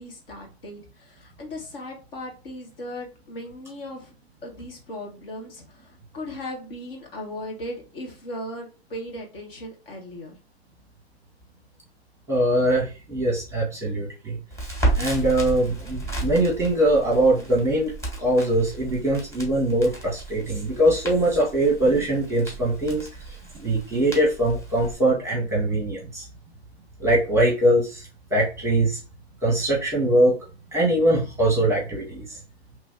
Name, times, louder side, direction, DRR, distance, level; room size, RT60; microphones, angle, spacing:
voice 1, 0.0-4.1 4.4-10.4, left 1 dB, 60° left, 1 dB, 1.4 m, -37 dB
voice 2, 12.3-14.4 15.0-17.9 18.2-23.1 23.6-26.2 27.0-28.0 28.3-29.0 29.4-30.4 30.7-32.4, right 1 dB, 10° right, -2 dB, 1.0 m, -22 dB
Crackle, 14.5-24.9, right 2 dB, 10° left, 1.4 m, -33 dB
3.0 x 2.6 x 3.5 m, 0.33 s
hypercardioid pair, 120°, 32 cm